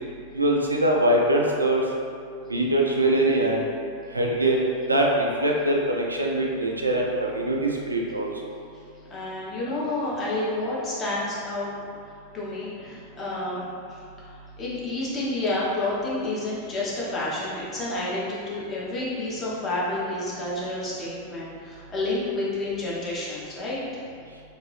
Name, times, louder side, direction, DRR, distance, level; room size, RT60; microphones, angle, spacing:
voice 1, 0.3-1.8 2.5-3.7 4.1-8.3, right 1 dB, 80° right, -1 dB, 0.4 m, -23 dB
voice 2, 9.1-11.7 12.3-23.8, left 2 dB, 25° left, -7 dB, 0.9 m, -30 dB
2.8 x 2.6 x 3.1 m, 2.3 s
figure-of-eight pair, 90°, 0 cm